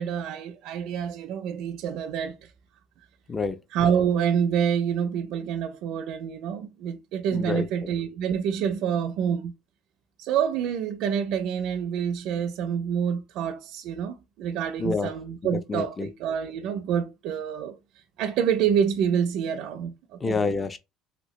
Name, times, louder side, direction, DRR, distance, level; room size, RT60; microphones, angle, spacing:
voice 1, 0.0-2.5 3.7-9.5 10.2-17.8 18.2-19.9 20.3-20.4, right 8 dB, 65° right, 0.4 m, -27 dB
voice 2, 3.3-3.6 7.3-7.9 14.8-15.1 15.5-16.1 20.2-20.8, left 4 dB, 20° left, 0.4 m, -28 dB
3.0 x 2.8 x 3.1 m
cardioid pair, 135°, 0 cm